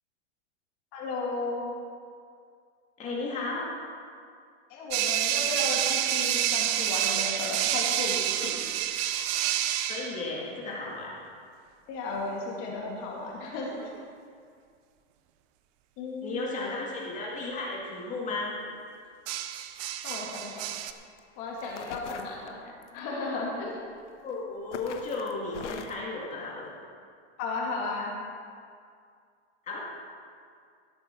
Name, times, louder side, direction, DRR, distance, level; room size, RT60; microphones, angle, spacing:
voice 1, 0.9-1.7 4.7-8.5 11.9-13.9 16.0-16.7 20.0-20.7 21.4-22.6 22.9-23.8 27.4-28.1, left 3 dB, 40° left, -3 dB, 2.5 m, -34 dB
voice 2, 3.0-3.7 9.8-11.1 16.2-18.5 24.2-26.7 29.7-29.9, left 3 dB, 20° left, -4 dB, 2.0 m, -34 dB
sound 1, 4.9-10.2 13.7-14.0 19.3-20.9, right 12 dB, 25° right, 0.4 m, -28 dB
sound 2, 20.1-20.4 21.2-21.3 21.6-23.0 24.1-24.3 24.7-26.0, left 7 dB, 85° left, 1.2 m, -42 dB
17.5 x 8.5 x 4.6 m, 2.2 s
supercardioid pair, 150°, 35 cm